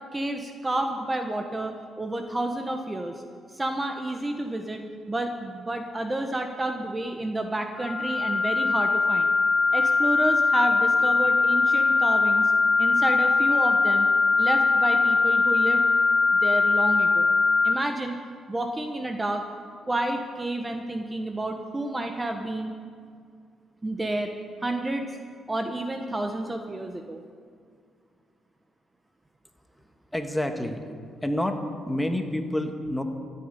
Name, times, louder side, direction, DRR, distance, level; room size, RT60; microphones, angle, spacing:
voice 1, 0.1-3.2 3.5-9.3 9.7-12.5 12.8-14.1 14.4-15.8 16.4-17.3 17.6-18.2 18.5-19.4 19.9-22.7 23.8-24.3 24.6-25.1 25.5-27.2, right 1 dB, 20° right, 5 dB, 1.2 m, -30 dB
sound 1, 7.8-17.7, left 4 dB, 35° left, 0.5 m, -21 dB
voice 2, 30.1-30.8 31.2-33.0, left 1 dB, 5° left, 5 dB, 1.6 m, -28 dB
14.0 x 8.8 x 9.9 m, 2.1 s
cardioid pair, 90°, 0 cm